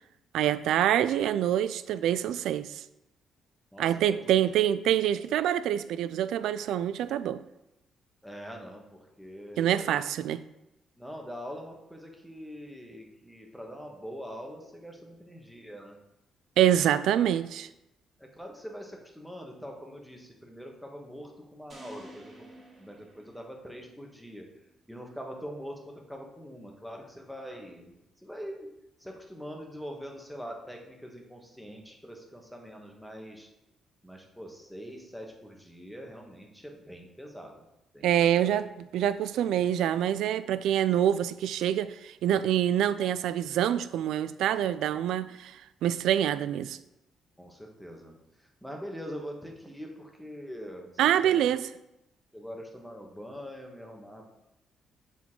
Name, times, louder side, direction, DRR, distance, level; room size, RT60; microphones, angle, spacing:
voice 1, 0.3-2.8 3.8-7.4 9.6-10.4 16.6-17.7 38.0-46.8 51.0-51.7, right 11 dB, 85° right, 14 dB, 0.3 m, -26 dB
voice 2, 8.2-10.0 11.0-15.9 18.2-24.5 24.9-27.9 28.2-28.7 29.0-33.5 34.0-37.6 37.9-38.5 47.4-48.1 48.6-51.5 52.3-54.3, equal, ahead, 1 dB, 1.3 m, -43 dB
sound 1, 21.7-24.0, right 2 dB, 40° right, 2.3 m, -51 dB
7.2 x 4.1 x 3.7 m, 0.87 s
cardioid pair, 90°, 0 cm